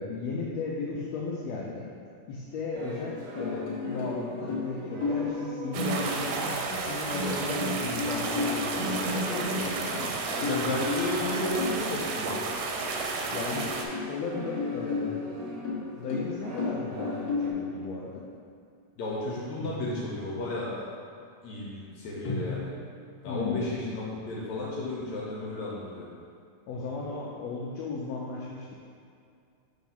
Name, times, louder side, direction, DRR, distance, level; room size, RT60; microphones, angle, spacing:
voice 1, 0.0-1.9 2.3-10.2 13.3-13.8 14.0-15.3 15.9-18.2 23.3-23.7 26.7-28.7, left 4 dB, 90° left, -3 dB, 1.4 m, -36 dB
sound 1, 2.7-7.5 8.1-17.5, right 1 dB, 70° right, 1.2 m, -41 dB
sound 2, 3.4-4.2 4.5-5.4 5.8-6.4 7.1-10.0 10.4-11.9 12.5-12.6 13.0-13.1 13.5-14.2 14.6-17.6 19.6-20.3 22.2-22.5, left 3 dB, 50° left, 1.2 m, -33 dB
sound 3, 5.7-13.8, right 4 dB, 85° right, 2.1 m, -32 dB
voice 2, 10.4-12.4 19.0-20.8 21.4-22.7 23.2-26.1, left 2 dB, 70° left, -5 dB, 1.9 m, -33 dB
5.7 x 3.5 x 5.6 m, 2.4 s
omnidirectional pair, 3.6 m